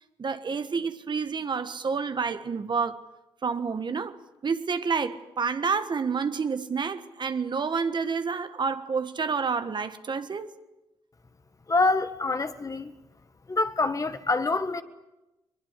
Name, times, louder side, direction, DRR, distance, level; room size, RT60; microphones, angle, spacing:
voice 1, 0.2-3.0 3.4-4.2 4.4-10.5, right 5 dB, 45° right, 1.5 m, -29 dB
voice 2, 11.7-12.9 13.5-14.8, left 3 dB, 30° left, 1.6 m, -26 dB
22.0 x 22.0 x 8.3 m
supercardioid pair, 60°, 11 cm